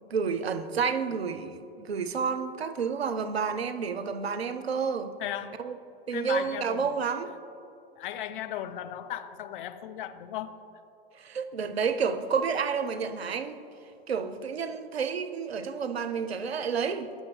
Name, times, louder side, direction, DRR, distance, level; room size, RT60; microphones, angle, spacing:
voice 1, 0.0-5.2 5.6-5.8 6.1-7.3 11.1-13.6 14.1-17.1, right 6 dB, 90° right, 10 dB, 0.5 m, -30 dB
voice 2, 5.2-5.6 6.1-7.0 8.0-10.5, left 11 dB, 60° left, 12 dB, 0.5 m, -36 dB
9.5 x 6.6 x 3.1 m, 2.7 s
figure-of-eight pair, 95°, 30 cm